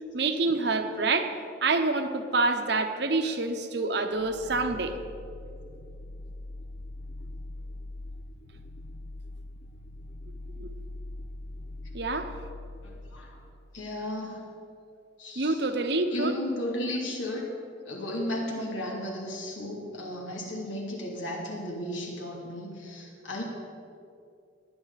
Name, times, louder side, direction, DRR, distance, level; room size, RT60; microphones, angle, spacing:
voice 1, 0.1-1.3 1.6-5.0 10.6-10.8 11.9-12.3 15.4-16.4, right 3 dB, 60° right, 7 dB, 0.9 m, -27 dB
sound 1, 4.1-13.8, left 2 dB, 40° left, 0.4 m, -42 dB
voice 2, 13.7-14.5 15.2-15.6 16.1-17.5 17.8-23.4, left 1 dB, 85° left, -2 dB, 2.7 m, -34 dB
20.0 x 9.3 x 4.1 m, 2.5 s
head